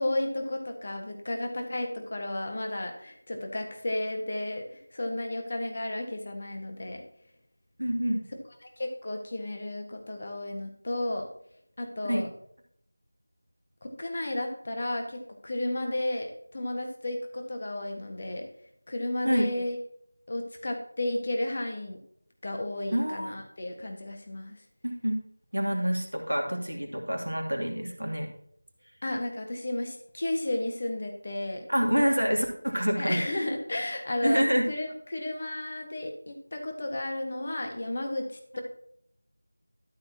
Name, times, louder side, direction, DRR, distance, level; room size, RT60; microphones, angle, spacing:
voice 1, 0.0-7.0 8.8-11.3 11.8-12.3 14.0-18.4 18.9-19.8 20.3-22.0 22.4-24.6 29.0-31.6 33.0-38.3, left 1 dB, 35° left, 4 dB, 1.6 m, -33 dB
voice 2, 7.8-8.2 12.1-12.2 19.2-19.5 22.9-23.4 24.8-25.2 25.5-28.3 31.7-33.5 34.2-34.7, equal, 75° right, 2 dB, 2.8 m, -27 dB
13.5 x 7.0 x 2.9 m, 0.68 s
figure-of-eight pair, 170°, 0 cm